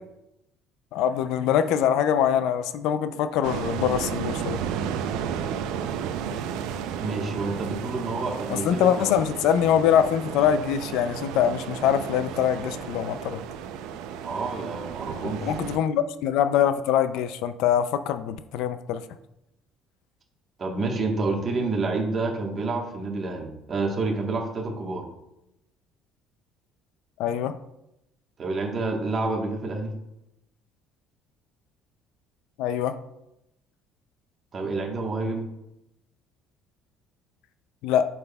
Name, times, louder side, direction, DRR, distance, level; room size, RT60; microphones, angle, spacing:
voice 1, 0.9-4.6 8.5-13.4 15.2-19.0 27.2-27.5 32.6-32.9 37.8-38.1, left 9 dB, 75° left, 11 dB, 0.4 m, -23 dB
sound 1, 3.4-15.8, right 8 dB, 85° right, 0.5 m, -33 dB
voice 2, 7.0-9.1 14.2-15.5 20.6-25.0 28.4-29.9 34.5-35.5, right 3 dB, 35° right, 1 dB, 1.2 m, -28 dB
7.6 x 5.6 x 2.3 m, 0.86 s
cardioid pair, 130°, 0 cm